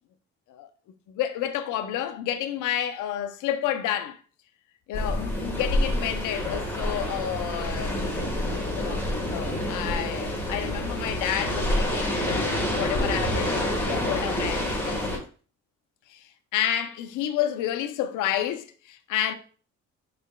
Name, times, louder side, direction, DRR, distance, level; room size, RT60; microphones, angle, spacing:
voice 1, 1.1-4.2 4.9-9.0 9.3-15.2 16.1-19.3, left 11 dB, 85° left, 0.6 m, -30 dB
sound 1, 4.9-15.2, left 1 dB, 5° left, 1.3 m, -28 dB
6.6 x 3.4 x 2.2 m
cardioid pair, 90°, 30 cm